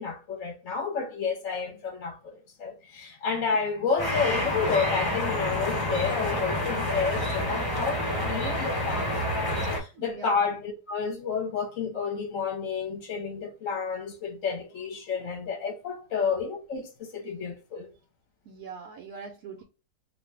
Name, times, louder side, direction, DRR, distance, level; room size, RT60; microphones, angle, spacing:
voice 1, 0.0-17.9, left 5 dB, 55° left, 1.0 m, -30 dB
sound 1, 4.0-9.8, left 1 dB, 25° left, 0.4 m, -28 dB
voice 2, 9.9-10.6 18.5-19.6, right 5 dB, 70° right, 1.1 m, -42 dB
2.8 x 2.6 x 3.2 m
omnidirectional pair, 1.8 m